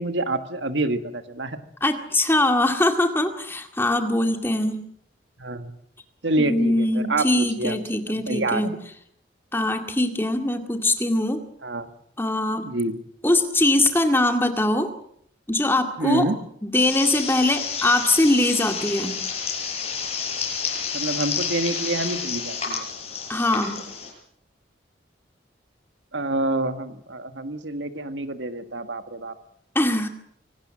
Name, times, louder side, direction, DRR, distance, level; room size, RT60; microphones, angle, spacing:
voice 1, 0.0-1.6 5.4-5.8 6.2-7.8 8.1-8.8 11.6-11.9 12.6-13.0 16.0-16.4 20.9-22.9 26.1-29.3, right 2 dB, 80° right, 9 dB, 1.8 m, -27 dB
voice 2, 1.8-4.8 6.4-8.7 9.5-11.4 12.2-12.7 13.2-14.9 15.5-16.3 16.6-19.2 23.3-23.8 29.8-30.1, left 1 dB, 10° left, 5 dB, 2.1 m, -22 dB
sound 1, 16.7-24.1, left 6 dB, 30° left, 7.3 m, -30 dB
25.0 x 18.5 x 7.6 m, 0.67 s
head